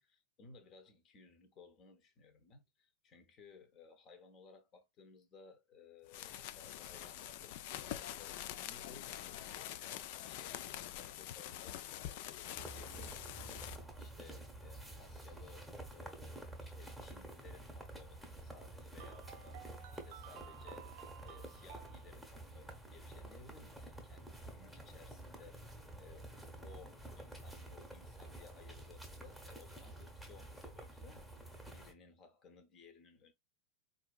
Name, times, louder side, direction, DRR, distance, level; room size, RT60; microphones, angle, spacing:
voice 1, 0.0-20.9 21.2-26.3 26.6-31.3 31.7-33.3, left 5 dB, 30° left, 0.8 m, -60 dB
sound 1, 6.1-13.8, left 12 dB, 50° left, 0.3 m, -45 dB
sound 2, 12.5-31.9, right 1 dB, ahead, 1.0 m, -50 dB
sound 3, 19.0-22.2, right 10 dB, 50° right, 0.4 m, -54 dB
4.4 x 2.6 x 2.3 m
figure-of-eight pair, 90°, 0 cm